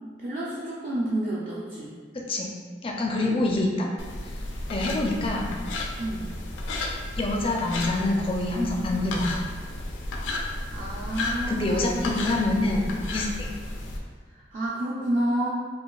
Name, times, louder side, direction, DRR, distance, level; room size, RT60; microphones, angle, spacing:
voice 1, 0.2-1.9 3.2-3.4 6.0-6.3 10.7-12.0 14.3-15.5, right 1 dB, 40° right, -7 dB, 0.4 m, -29 dB
voice 2, 2.1-2.5 2.8-3.9 4.7-5.5 7.2-9.4 11.5-13.5, left 2 dB, 30° left, -1 dB, 0.4 m, -26 dB
sound 1, 4.0-14.0, left 2 dB, 90° left, 0.5 m, -33 dB
5.0 x 2.4 x 2.3 m, 1.5 s
head